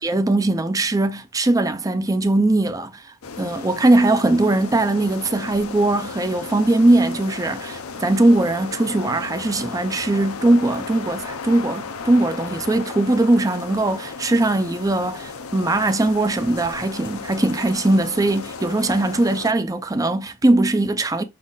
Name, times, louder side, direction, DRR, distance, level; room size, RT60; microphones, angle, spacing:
voice 1, 0.0-21.2, right 2 dB, 15° right, 0.5 m, -20 dB
sound 1, 3.2-19.5, left 4 dB, 70° left, 0.8 m, -35 dB
6.0 x 4.3 x 3.8 m
head